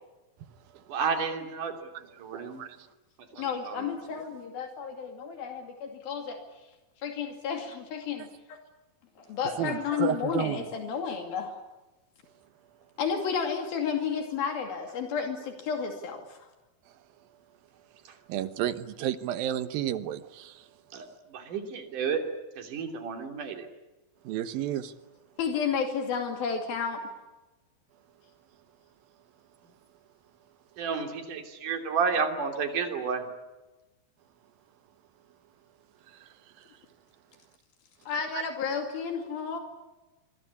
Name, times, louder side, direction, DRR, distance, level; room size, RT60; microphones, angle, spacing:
voice 1, 0.9-1.8 2.2-2.6 3.3-3.9 20.9-21.1 21.3-22.2 22.6-23.7 30.8-33.2, right 6 dB, 60° right, 4.4 m, -31 dB
voice 2, 2.5-2.9 3.4-3.5 9.6-10.7 16.9-17.0 18.3-20.7 24.2-24.9 36.1-36.8 38.3-38.4, right 11 dB, 75° right, 3.0 m, -32 dB
voice 3, 3.4-6.4 7.0-8.6 9.2-11.6 13.0-16.5 25.4-27.0 38.1-39.6, left 6 dB, 80° left, 4.3 m, -32 dB
26.0 x 24.5 x 8.5 m
omnidirectional pair, 4.2 m